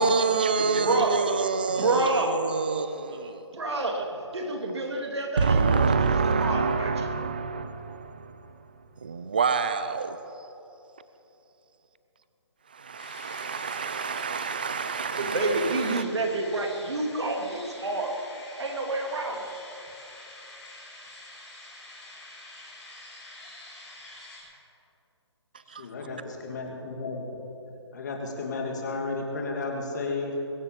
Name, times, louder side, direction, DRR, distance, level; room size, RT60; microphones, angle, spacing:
voice 1, 0.0-3.4 5.4-8.3 9.0-10.2 12.7-16.0 25.7-25.9, right 5 dB, 20° right, 12 dB, 0.3 m, -27 dB
voice 2, 0.6-2.4 3.2-7.1 15.2-18.2 18.6-19.5, right 2 dB, 65° right, 2 dB, 3.0 m, -29 dB
sound 1, 13.0-24.4, left 2 dB, 5° left, 4.0 m, -46 dB
voice 3, 25.8-27.3 27.9-30.4, left 3 dB, 40° left, 1 dB, 2.6 m, -33 dB
22.0 x 7.5 x 8.4 m, 3.0 s
hypercardioid pair, 170°, 15 cm